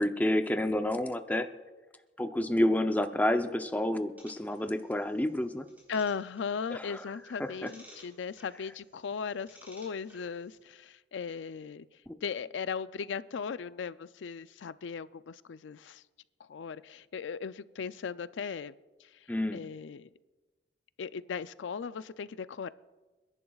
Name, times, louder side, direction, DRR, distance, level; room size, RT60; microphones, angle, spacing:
voice 1, 0.0-1.5 2.2-5.7 6.7-7.0 7.4-7.7 12.1-12.2 19.3-19.6, left 1 dB, 10° left, 8 dB, 0.6 m, -29 dB
sound 1, 4.2-10.6, equal, 10° right, 3.8 m, -58 dB
voice 2, 5.9-11.9 12.2-16.0 16.4-18.7 19.0-20.1 21.0-22.7, left 6 dB, 85° left, 15 dB, 0.4 m, -37 dB
29.5 x 11.0 x 2.4 m, 1.2 s
head